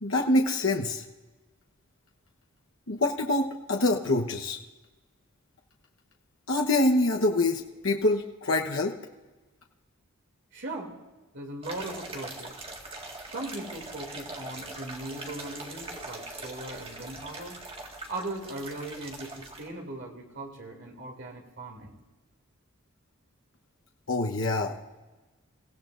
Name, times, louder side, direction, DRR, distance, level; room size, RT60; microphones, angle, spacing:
voice 1, 0.0-1.0 2.9-4.6 6.5-9.0 24.1-24.7, left 2 dB, 70° left, 0 dB, 1.1 m, -25 dB
voice 2, 10.5-11.0 11.3-12.6 13.3-17.6 18.1-21.9, right 2 dB, 60° right, 1 dB, 2.7 m, -39 dB
sound 1, 11.6-19.7, right 2 dB, 25° right, 1.8 m, -42 dB
29.0 x 16.5 x 2.6 m, 1.2 s
head